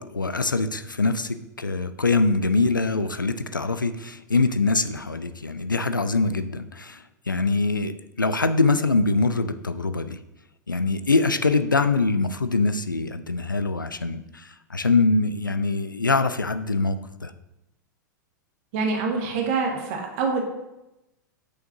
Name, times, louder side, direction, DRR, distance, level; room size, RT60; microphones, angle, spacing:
voice 1, 0.0-10.2 10.7-17.3, left 3 dB, 90° left, 11 dB, 0.4 m, -24 dB
voice 2, 18.7-20.4, right 4 dB, 50° right, 1 dB, 1.7 m, -25 dB
8.3 x 6.5 x 2.7 m, 0.93 s
figure-of-eight pair, 95°, 10 cm